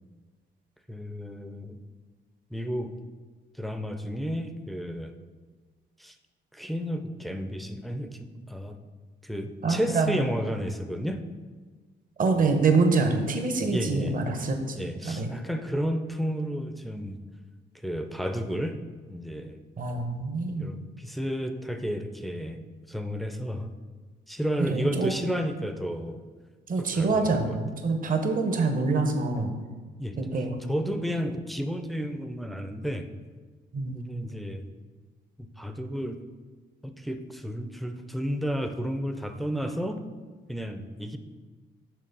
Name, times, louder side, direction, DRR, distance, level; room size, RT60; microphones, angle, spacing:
voice 1, 0.9-1.8 2.5-2.9 3.5-5.1 6.0-6.2 6.5-8.8 9.2-11.2 13.7-14.2 14.7-17.2 17.8-18.8 19.1-19.6 20.6-22.6 22.9-23.7 24.3-26.2 26.8-27.6 30.0-30.2 30.7-33.1 33.9-34.7 35.4-36.2 36.8-40.0 40.5-41.2, equal, ahead, 7 dB, 0.4 m, -32 dB
voice 2, 9.6-10.2 12.2-14.8 15.0-15.3 19.8-20.7 24.7-25.1 26.7-29.5 30.2-30.5 33.7-34.0, right 3 dB, 45° right, 5 dB, 0.9 m, -25 dB
6.7 x 3.2 x 5.3 m, 1.4 s
cardioid pair, 90°, 20 cm